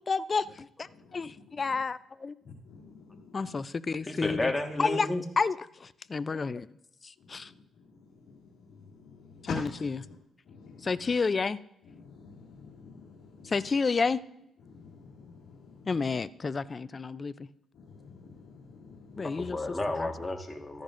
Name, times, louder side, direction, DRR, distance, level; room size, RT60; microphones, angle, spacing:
voice 1, 0.0-2.3 3.3-4.5 4.8-5.1 5.4-6.7 7.0-7.5 9.5-9.7 10.8-11.6 13.4-14.2 15.9-17.5 19.2-19.6 20.0-20.1, left 4 dB, 35° left, 0.4 m, -30 dB
voice 2, 0.9-1.8 2.4-3.6 7.2-10.2 10.4-11.1 11.8-13.6 14.6-16.1 17.7-19.5, left 4 dB, 70° left, 2.1 m, -47 dB
voice 3, 4.1-5.2 19.3-20.8, left 2 dB, 15° left, 1.5 m, -32 dB
14.0 x 10.5 x 2.5 m
cardioid pair, 90°, 0 cm